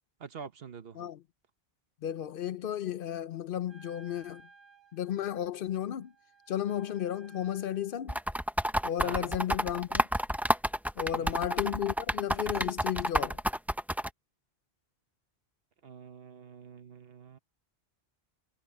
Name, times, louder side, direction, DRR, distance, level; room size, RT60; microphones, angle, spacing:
voice 1, 0.2-1.1 9.0-9.4 11.2-11.5 15.8-17.4, right 6 dB, 70° right, 1.2 m, -46 dB
voice 2, 2.0-4.4 4.9-6.1 6.5-8.2 8.8-10.1 11.0-13.4, left 10 dB, 65° left, 0.7 m, -33 dB
Wind instrument woodwind instrument, 3.7-8.2, right 3 dB, 40° right, 5.5 m, -58 dB
sound 1, 8.1-14.1, equal, ahead, 0.4 m, -29 dB
omnidirectional pair, 1.1 m